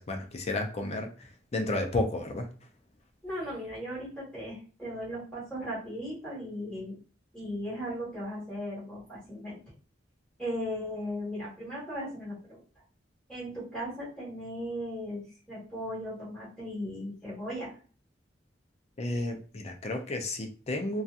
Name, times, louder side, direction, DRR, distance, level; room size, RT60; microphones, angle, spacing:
voice 1, 0.0-2.5 19.0-21.0, left 2 dB, 35° left, 4 dB, 0.5 m, -32 dB
voice 2, 3.2-7.0 7.3-9.6 10.4-12.6 13.3-17.7, equal, 5° left, -8 dB, 1.4 m, -37 dB
2.7 x 2.3 x 2.4 m, 0.39 s
head